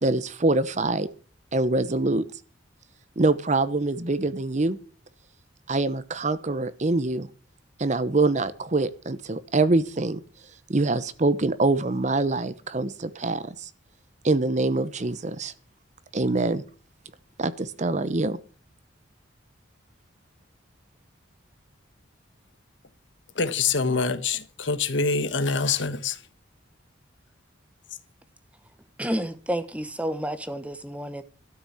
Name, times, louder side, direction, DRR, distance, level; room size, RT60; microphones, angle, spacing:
voice 1, 0.0-1.1 1.5-2.2 3.2-4.8 5.7-7.3 7.8-10.2 10.7-13.7 14.2-15.5 16.1-16.6 17.4-18.4, right 2 dB, 35° right, 0.8 m, -24 dB
voice 2, 23.3-26.2, left 4 dB, 70° left, 1.3 m, -25 dB
voice 3, 29.0-31.2, equal, 5° right, 1.0 m, -30 dB
13.0 x 6.8 x 8.6 m
head